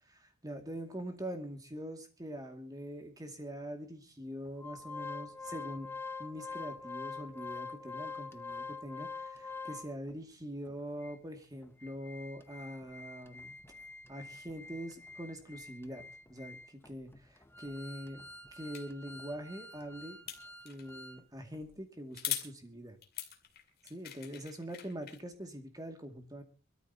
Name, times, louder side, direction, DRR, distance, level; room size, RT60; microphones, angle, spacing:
voice 1, 0.4-5.9 6.2-13.6 14.1-16.0 16.3-20.2 20.6-23.0 23.9-26.4, equal, 20° right, 5 dB, 2.3 m, -43 dB
Organ, 4.6-10.1 10.7-10.8 11.0-11.2 11.6-21.2 21.5-21.7, left 4 dB, 10° left, 0.8 m, -46 dB
sound 1, 18.7-18.8 20.3-20.9 22.1-22.5 23.0-25.2, left 11 dB, 50° left, 2.4 m, -40 dB
24.5 x 13.5 x 2.9 m, 0.33 s
head